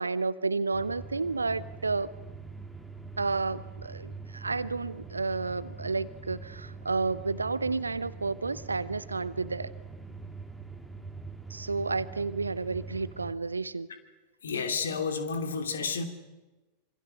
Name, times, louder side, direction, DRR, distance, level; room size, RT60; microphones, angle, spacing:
voice 1, 0.0-2.1 3.2-9.7 11.5-13.9, right 3 dB, 80° right, 17 dB, 0.9 m, -31 dB
sound 1, 0.7-13.3, right 4 dB, ahead, 2.3 m, -43 dB
voice 2, 14.4-16.0, left 5 dB, 65° left, 7 dB, 2.9 m, -31 dB
26.5 x 26.0 x 6.5 m, 1.2 s
figure-of-eight pair, 90°, 0 cm